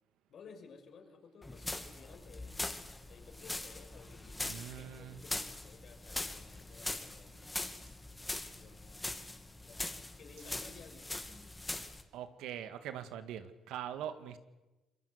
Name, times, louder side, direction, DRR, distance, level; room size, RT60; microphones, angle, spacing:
voice 1, 0.3-2.5 3.1-7.6 8.2-9.2 9.6-11.4, left 5 dB, 60° left, 4 dB, 6.2 m, -56 dB
sound 1, 1.4-12.0, left 2 dB, 15° left, 2.8 m, -42 dB
voice 2, 4.4-5.2 12.1-14.4, right 10 dB, 90° right, 10 dB, 1.9 m, -42 dB
27.0 x 22.5 x 8.3 m, 1.1 s
cardioid pair, 90°, 0 cm